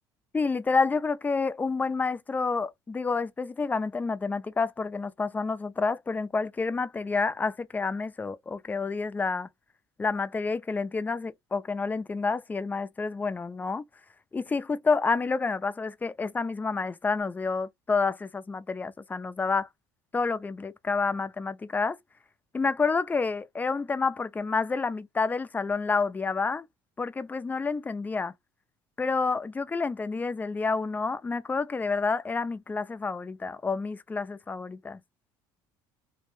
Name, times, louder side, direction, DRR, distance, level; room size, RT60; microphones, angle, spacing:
voice 1, 0.3-9.5 10.0-13.8 14.3-19.7 20.1-22.0 22.5-26.7 27.0-28.3 29.0-35.0, left 4 dB, 15° left, 0.4 m, -29 dB
2.6 x 2.1 x 3.0 m
supercardioid pair, 85°, 10 cm